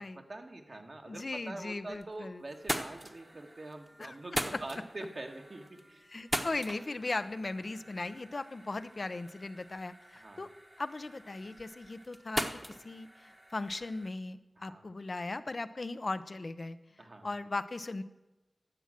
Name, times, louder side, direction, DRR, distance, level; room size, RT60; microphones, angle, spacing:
voice 1, 0.0-6.0 10.1-10.5 14.6-14.8 17.0-17.3, right 2 dB, 60° right, 3 dB, 1.6 m, -45 dB
voice 2, 1.1-2.4 4.0-4.2 6.1-10.5 10.8-12.5 12.8-18.0, left 2 dB, 60° left, 12 dB, 0.6 m, -38 dB
sound 1, 1.6-2.2 2.5-14.1, right 1 dB, 25° right, 1.1 m, -41 dB
11.5 x 7.1 x 7.5 m, 1.0 s
cardioid pair, 40°, 0 cm